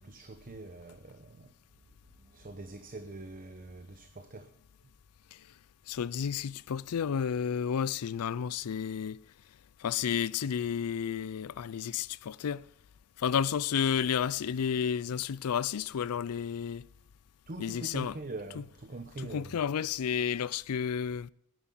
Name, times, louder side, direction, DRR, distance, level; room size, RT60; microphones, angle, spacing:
voice 1, 0.0-1.5 2.2-4.5 17.5-19.5, right 2 dB, 40° right, 0.8 m, -43 dB
voice 2, 5.9-9.2 9.8-12.7 13.2-16.8 17.6-18.2 18.5-18.6 19.2-21.3, left 7 dB, 85° left, 0.4 m, -31 dB
10.0 x 9.3 x 9.8 m
head